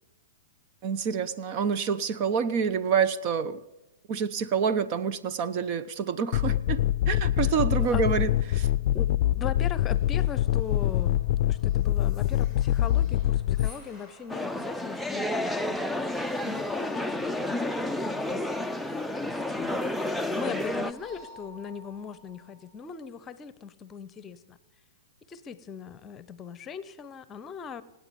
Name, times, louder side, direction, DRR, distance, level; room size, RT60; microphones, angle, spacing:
voice 1, 0.8-3.6 4.1-8.3 8.6-8.7, right 6 dB, 40° right, 13 dB, 0.9 m, -27 dB
sound 1, 6.3-13.7, left 13 dB, 55° left, 0.5 m, -25 dB
sound 2, 7.8-8.2 8.5-9.0 9.6-23.0, left 1 dB, 20° right, 6.3 m, -55 dB
voice 2, 8.9-11.2 11.5-15.9 16.4-18.6 19.2-24.6 25.3-27.8, left 6 dB, 25° left, 16 dB, 0.9 m, -39 dB
sound 3, 14.3-20.9, left 1 dB, ahead, 0.6 m, -30 dB
25.5 x 9.5 x 5.3 m, 1.0 s
hypercardioid pair, 120°, 0 cm